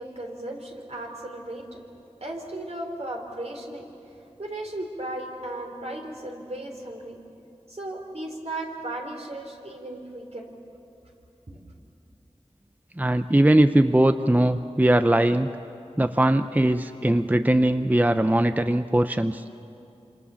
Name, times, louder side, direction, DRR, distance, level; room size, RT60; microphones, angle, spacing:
voice 1, 0.0-1.8 2.2-3.9 4.4-7.2 7.7-10.5 11.5-11.6, right 1 dB, 65° right, 1 dB, 3.9 m, -36 dB
voice 2, 13.0-15.5 16.0-19.4, right 1 dB, 15° right, 9 dB, 0.6 m, -20 dB
27.0 x 26.5 x 7.1 m, 2.7 s
wide cardioid pair, 55°, 12 cm